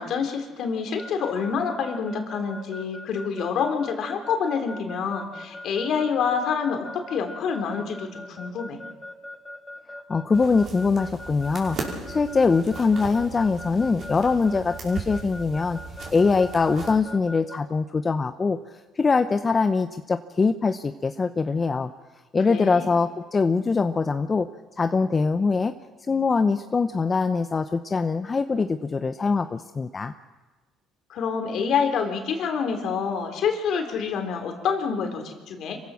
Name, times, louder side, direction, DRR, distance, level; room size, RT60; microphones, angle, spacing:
voice 1, 0.0-8.8 22.5-22.9 31.1-35.8, left 6 dB, 65° left, 5 dB, 3.4 m, -27 dB
Keyboard (musical) / Alarm, 1.0-17.6, left 1 dB, 10° left, 3.8 m, -40 dB
voice 2, 10.1-15.8 16.1-18.6 19.0-21.9 22.3-24.5 24.8-25.7 26.1-30.1, left 4 dB, 30° left, 9 dB, 0.8 m, -23 dB
sound 1, 10.3-16.9, right 4 dB, 50° right, 5.4 m, -38 dB
26.5 x 16.0 x 6.4 m, 1.3 s
hypercardioid pair, 65°, 0 cm